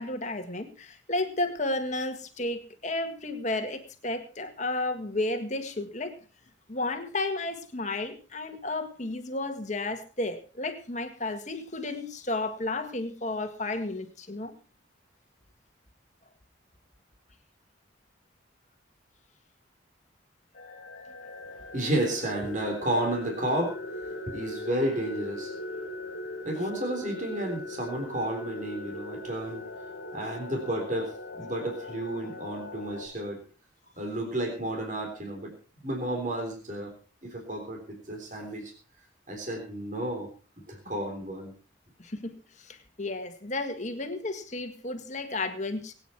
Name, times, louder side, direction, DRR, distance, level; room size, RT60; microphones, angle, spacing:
voice 1, 0.0-6.2 6.7-14.5 42.0-45.9, left 2 dB, 40° left, 7 dB, 1.8 m, -32 dB
sound 1, 20.5-33.1, left 1 dB, 55° left, 2.4 m, -40 dB
voice 2, 21.7-23.8 24.3-25.5 26.4-29.6 30.1-33.4 34.0-35.5 35.8-36.9 37.2-38.7 39.3-40.3 40.7-41.5, right 1 dB, 40° right, 2 dB, 3.7 m, -32 dB
22.0 x 9.3 x 4.4 m, 0.35 s
head